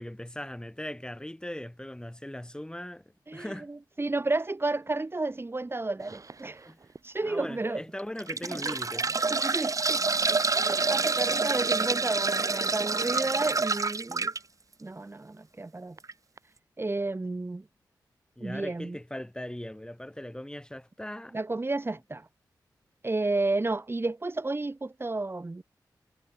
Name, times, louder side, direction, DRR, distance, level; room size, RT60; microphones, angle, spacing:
voice 1, 0.0-3.0 3.3-3.7 6.7-6.8 7.2-9.2 18.4-21.4, left 1 dB, 10° left, 4.8 m, -39 dB
voice 2, 3.3-6.7 7.0-7.8 8.5-8.8 9.3-10.0 10.3-14.3 14.8-16.0 16.8-17.7 18.4-19.0 21.3-22.3 23.0-25.6, right 2 dB, 30° right, 2.8 m, -32 dB
sound 1, 6.1-6.3 7.0-7.1 8.0-14.4 16.0-16.1 16.4-16.5, right 4 dB, 45° right, 1.9 m, -27 dB
cardioid pair, 55°, 8 cm